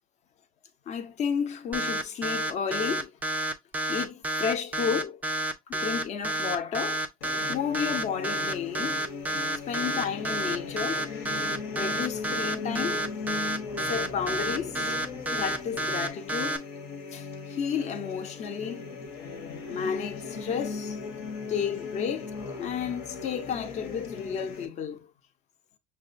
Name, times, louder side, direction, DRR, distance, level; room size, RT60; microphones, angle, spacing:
voice 1, 0.9-3.1 3.9-5.2 5.7-7.0 7.5-9.4 9.6-11.1 11.7-13.0 13.9-15.0 15.4-16.6 17.1-18.9 19.7-21.0 21.5-22.3 22.6-25.1, left 7 dB, 35° left, 0.7 m, -32 dB
sound 1, 1.7-16.6, right 1 dB, 10° right, 0.4 m, -29 dB
sound 2, 7.2-24.7, left 4 dB, 65° left, 1.1 m, -38 dB
6.0 x 2.2 x 2.5 m
cardioid pair, 140°, 19 cm